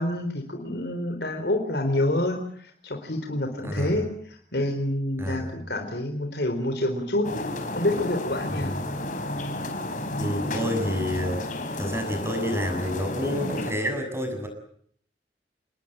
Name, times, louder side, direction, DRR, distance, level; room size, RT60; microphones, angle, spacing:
voice 1, 0.0-7.3 7.7-8.7, left 1 dB, 60° left, 5 dB, 3.9 m, -27 dB
voice 2, 3.6-4.0 5.2-5.5 8.5-8.6 10.2-11.4 11.7-14.5, equal, 15° right, 6 dB, 7.0 m, -29 dB
sound 1, 7.2-13.7, left 1 dB, 45° left, 4.6 m, -32 dB
28.5 x 20.0 x 9.0 m, 0.64 s
head